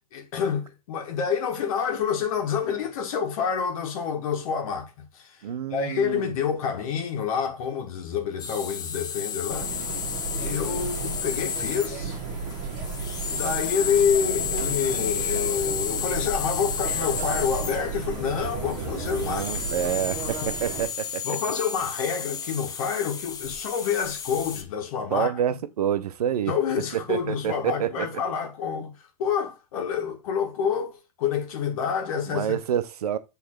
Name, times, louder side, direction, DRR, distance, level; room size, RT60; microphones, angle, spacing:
voice 1, 0.1-5.4 5.7-9.7 10.3-12.2 13.2-19.6 19.8-20.0 21.2-25.3 26.5-32.6, left 7 dB, 60° left, 1.5 m, -28 dB
voice 2, 5.4-6.3 19.2-21.4 25.1-26.5 26.9-28.1 32.3-33.2, right 10 dB, 80° right, 0.7 m, -28 dB
sound 1, 8.4-24.6, left 7 dB, 20° left, 0.9 m, -32 dB
sound 2, 9.5-20.9, right 5 dB, 40° right, 1.4 m, -33 dB
6.5 x 3.3 x 4.5 m
hypercardioid pair, 110°, 20 cm